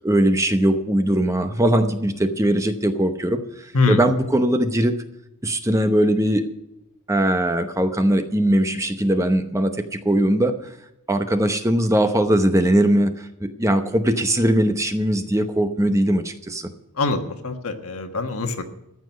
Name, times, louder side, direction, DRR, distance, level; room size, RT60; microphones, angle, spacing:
voice 1, 0.0-5.0 5.4-6.4 7.1-10.5 11.1-16.7, right 1 dB, 15° right, 8 dB, 0.8 m, -20 dB
voice 2, 17.0-18.6, left 3 dB, 75° left, 6 dB, 1.4 m, -23 dB
14.5 x 6.0 x 9.4 m, 0.87 s
head